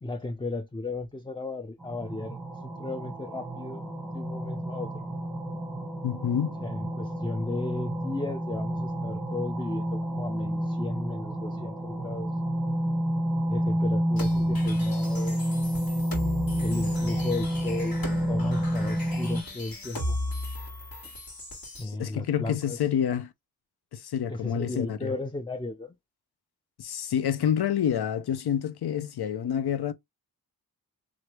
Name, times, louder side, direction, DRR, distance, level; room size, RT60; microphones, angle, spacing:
voice 1, 0.0-5.1 6.6-12.3 13.5-15.4 16.6-20.2 21.8-22.8 24.3-26.0, left 2 dB, 15° left, 0.4 m, -35 dB
sound 1, 1.8-19.4, equal, 5° right, 1.0 m, -29 dB
voice 2, 6.0-6.6 21.8-23.3 23.9-25.2 26.8-29.9, left 9 dB, 85° left, 0.6 m, -28 dB
sound 2, 14.2-21.8, left 1 dB, 65° left, 1.8 m, -36 dB
3.1 x 2.5 x 2.9 m
wide cardioid pair, 60°, 38 cm